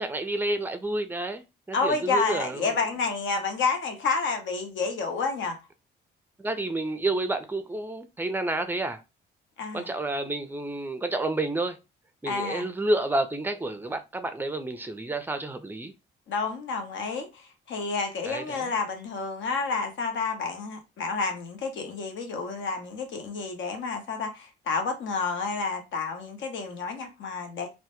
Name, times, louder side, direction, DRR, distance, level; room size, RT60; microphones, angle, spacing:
voice 1, 0.0-2.8 6.4-9.0 9.7-11.8 12.2-15.9 18.3-18.7, right 2 dB, 10° right, 0.4 m, -30 dB
voice 2, 1.7-5.6 9.6-9.9 12.3-12.7 16.3-27.7, left 4 dB, 70° left, 0.8 m, -30 dB
2.1 x 2.1 x 2.9 m
cardioid pair, 90°, 20 cm